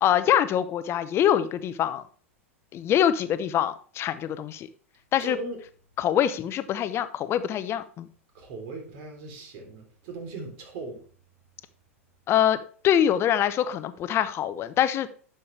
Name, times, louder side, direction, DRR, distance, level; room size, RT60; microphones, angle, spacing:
voice 1, 0.0-2.0 2.7-4.7 5.1-5.4 6.0-8.1 12.3-12.6 12.8-15.1, left 10 dB, 35° left, 13 dB, 0.7 m, -24 dB
voice 2, 5.2-5.6 8.3-11.0, right 2 dB, 50° right, 3 dB, 3.2 m, -38 dB
11.0 x 6.7 x 3.3 m, 0.43 s
figure-of-eight pair, 95°, 8 cm